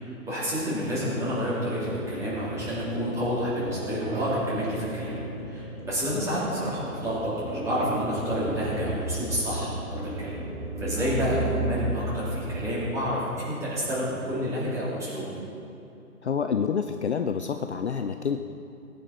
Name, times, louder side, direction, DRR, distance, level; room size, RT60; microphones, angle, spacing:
voice 1, 0.0-5.2 5.5-10.4 10.8-15.3, equal, 5° right, -10 dB, 3.5 m, -29 dB
sound 1, 1.8-12.7, right 2 dB, 40° right, 3.2 m, -34 dB
voice 2, 16.2-18.4, left 6 dB, 50° left, 7 dB, 0.6 m, -28 dB
20.5 x 9.3 x 4.3 m, 2.7 s
figure-of-eight pair, 150°, 44 cm